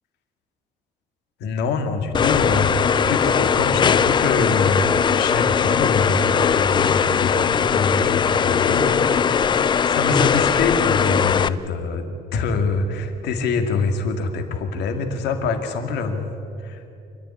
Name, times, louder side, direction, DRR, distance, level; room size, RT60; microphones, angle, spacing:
voice 1, 1.4-9.5 9.9-16.3 16.6-16.8, left 4 dB, 90° left, 5 dB, 2.2 m, -25 dB
sound 1, 2.1-11.5, left 7 dB, 25° left, 0.4 m, -19 dB
27.0 x 10.5 x 9.8 m, 2.8 s
cardioid pair, 150°, 17 cm